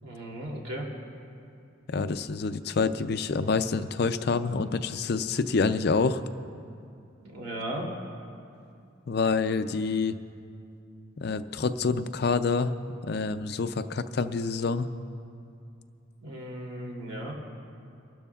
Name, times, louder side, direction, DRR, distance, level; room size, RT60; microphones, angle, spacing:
voice 1, 0.0-0.9 7.2-7.9 16.2-17.3, right 1 dB, 80° right, -2 dB, 2.9 m, -36 dB
voice 2, 1.9-6.2 9.1-10.2 11.2-12.7 13.0-14.9, left 4 dB, 50° left, 11 dB, 0.4 m, -27 dB
28.5 x 12.5 x 2.4 m, 2.6 s
head